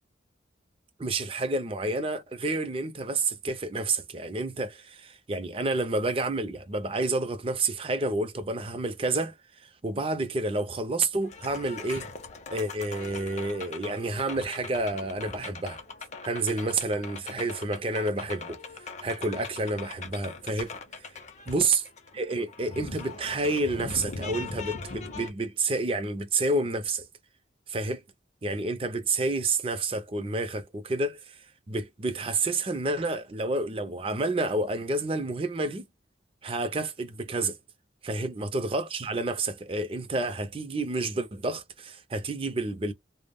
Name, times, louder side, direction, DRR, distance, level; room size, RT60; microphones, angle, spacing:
voice 1, 1.0-9.4 9.6-12.1 12.5-15.8 16.2-18.6 19.0-20.7 21.5-21.8 22.1-27.1 27.7-28.0 28.4-31.3 31.7-35.9 36.4-37.6 38.0-42.9, right 2 dB, 30° right, 0.4 m, -29 dB
sound 1, 11.2-25.3, left 4 dB, 35° left, 0.5 m, -41 dB
2.1 x 2.0 x 3.4 m
head